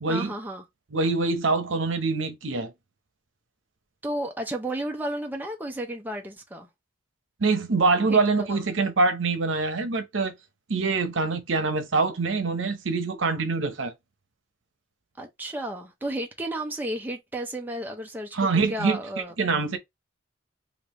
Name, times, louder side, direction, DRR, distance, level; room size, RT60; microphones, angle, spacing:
voice 1, 0.1-0.6 4.0-6.7 8.1-8.6 15.2-19.3, right 1 dB, 10° right, 0.6 m, -33 dB
voice 2, 0.9-2.7 7.4-10.3 10.7-13.9 18.3-19.0 19.4-19.8, right 3 dB, 85° right, 0.8 m, -24 dB
3.3 x 2.5 x 3.0 m
head